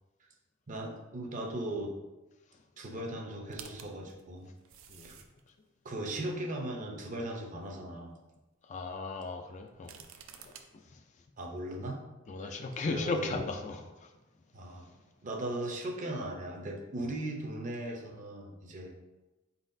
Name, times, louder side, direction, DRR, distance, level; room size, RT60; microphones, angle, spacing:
voice 1, 0.7-1.9 2.8-4.5 5.0-5.2 5.8-8.2 11.4-12.0 12.4-12.5 12.8-13.5 14.5-14.9 15.2-18.9, right 1 dB, 40° right, 1 dB, 0.7 m, -38 dB
sound 1, 3.5-5.5 6.2-6.3 9.7-10.6, right 8 dB, 75° right, 0.4 m, -50 dB
voice 2, 8.6-10.0 10.4-11.0 12.3-14.1, left 3 dB, 35° left, 4 dB, 0.4 m, -37 dB
4.7 x 4.0 x 2.6 m, 1.1 s
head